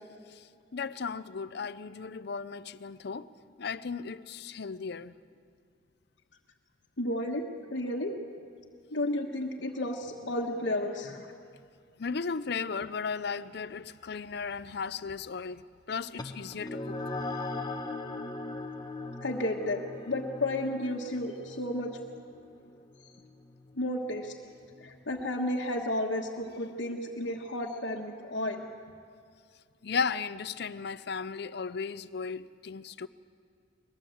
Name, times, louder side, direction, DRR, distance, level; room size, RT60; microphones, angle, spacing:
voice 1, 0.7-3.3 3.6-5.2 12.0-15.6 15.9-17.0 29.8-33.1, left 5 dB, 60° left, 0.6 m, -35 dB
voice 2, 7.0-7.4 7.7-8.2 8.9-11.3 19.2-22.0 23.8-24.3 24.8-28.6, left 1 dB, 85° left, 1.4 m, -32 dB
sound 1, 16.2-25.0, left 2 dB, 25° left, 1.0 m, -40 dB
21.5 x 20.0 x 7.9 m
head